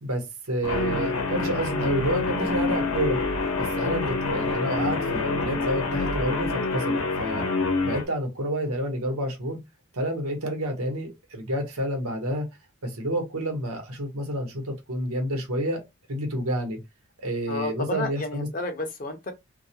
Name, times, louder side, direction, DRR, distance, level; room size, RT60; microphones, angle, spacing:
voice 1, 0.0-3.2 3.6-7.5 7.8-9.6 9.9-12.5 12.8-15.8 16.1-16.8 17.2-18.5, right 1 dB, 85° right, 0.9 m, -29 dB
Guitar, 0.6-8.0, left 3 dB, 80° left, 0.7 m, -26 dB
voice 2, 17.5-19.3, left 2 dB, 35° left, 0.5 m, -32 dB
2.3 x 2.1 x 2.7 m
head